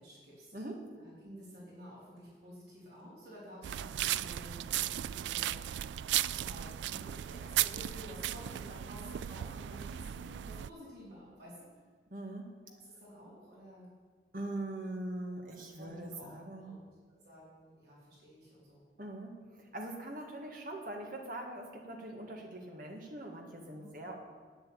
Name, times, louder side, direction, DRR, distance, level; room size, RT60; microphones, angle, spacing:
voice 1, 0.0-0.5 1.0-6.0 6.4-11.7 12.8-13.9 15.8-16.3 16.6-16.8 17.1-18.8 23.7-23.9, equal, 70° right, -7 dB, 4.7 m, -52 dB
voice 2, 0.5-0.8 12.1-12.5 14.3-16.8 19.0-24.2, right 1 dB, 50° right, 1 dB, 1.9 m, -42 dB
sound 1, 3.6-10.7, right 12 dB, 90° right, 0.3 m, -36 dB
9.2 x 8.0 x 8.8 m, 1.5 s
head